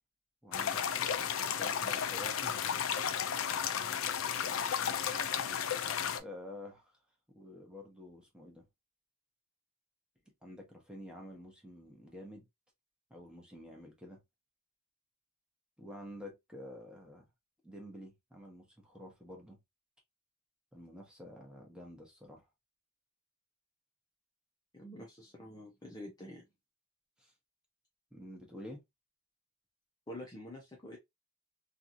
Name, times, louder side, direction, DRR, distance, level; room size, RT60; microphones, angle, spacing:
voice 1, 0.4-2.6 6.2-6.9 7.3-8.6 10.4-12.5 13.1-14.2 15.8-17.3 17.6-19.6 20.7-22.4 27.2-27.3 28.1-28.8, left 1 dB, 5° right, 0.9 m, -49 dB
sound 1, 0.5-6.2, left 8 dB, 70° left, 0.4 m, -33 dB
voice 2, 24.7-26.4 30.1-31.0, left 1 dB, 20° left, 0.6 m, -47 dB
2.8 x 2.4 x 2.6 m
head